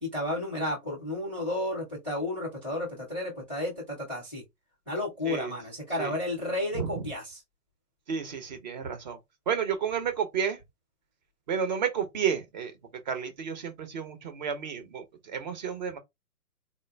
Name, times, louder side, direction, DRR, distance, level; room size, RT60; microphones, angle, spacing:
voice 1, 0.0-4.4 4.9-7.4, left 1 dB, 10° left, 0.4 m, -32 dB
voice 2, 6.7-7.1 8.1-9.2 9.5-10.6 11.5-12.7 13.1-16.0, right 7 dB, 30° right, 0.7 m, -31 dB
4.1 x 2.1 x 3.2 m
hypercardioid pair, 150°, 47 cm